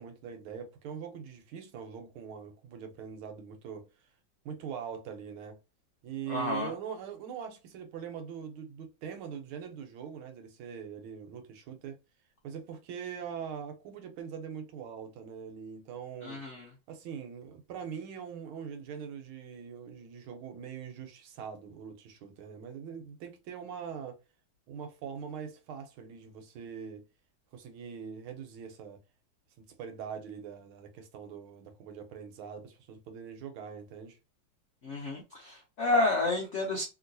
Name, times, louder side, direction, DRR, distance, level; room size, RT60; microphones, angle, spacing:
voice 1, 0.0-3.9 4.4-5.6 6.0-12.0 12.4-16.4 16.9-24.2 24.7-27.0 27.5-29.0 29.6-34.2, right 7 dB, 85° right, 1.6 m, -42 dB
voice 2, 6.3-6.7 16.2-16.7 34.8-36.8, left 2 dB, 75° left, 0.6 m, -30 dB
3.1 x 3.0 x 2.6 m
omnidirectional pair, 2.3 m